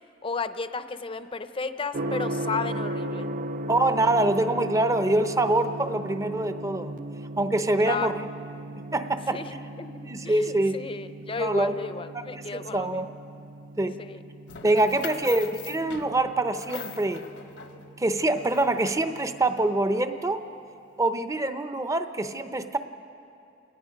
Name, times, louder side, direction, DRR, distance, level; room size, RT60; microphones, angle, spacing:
voice 1, 0.2-3.3 7.8-8.1 9.3-13.1 14.0-14.2 15.1-15.2, left 4 dB, 30° left, 11 dB, 0.7 m, -33 dB
Gong, 1.9-19.8, right 1 dB, 50° right, 0.5 m, -37 dB
voice 2, 3.7-7.0 7.4-8.2 8.9-9.4 10.1-10.8 11.4-11.7 12.1-12.2 12.5-13.1 13.8-14.0 14.6-17.2 18.0-20.4 21.0-22.8, right 2 dB, 20° right, 9 dB, 0.7 m, -25 dB
sound 1, 14.5-19.2, left 6 dB, 75° left, 1.1 m, -42 dB
29.0 x 19.0 x 5.2 m, 2.6 s
head